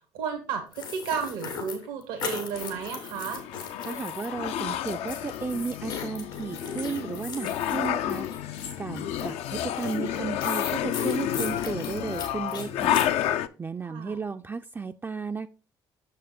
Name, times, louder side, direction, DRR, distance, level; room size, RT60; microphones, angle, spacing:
voice 1, 0.1-3.4 13.8-14.2, right 6 dB, 85° right, 5 dB, 1.1 m, -33 dB
sound 1, 0.7-4.3 4.6-13.2, left 5 dB, 90° left, 1.6 m, -37 dB
sound 2, 2.5-13.5, left 11 dB, 65° left, 0.4 m, -30 dB
voice 2, 3.8-13.0 13.6-15.5, right 4 dB, 20° right, 6 dB, 0.3 m, -34 dB
6.5 x 5.6 x 3.8 m, 0.35 s
hypercardioid pair, 55°, 11 cm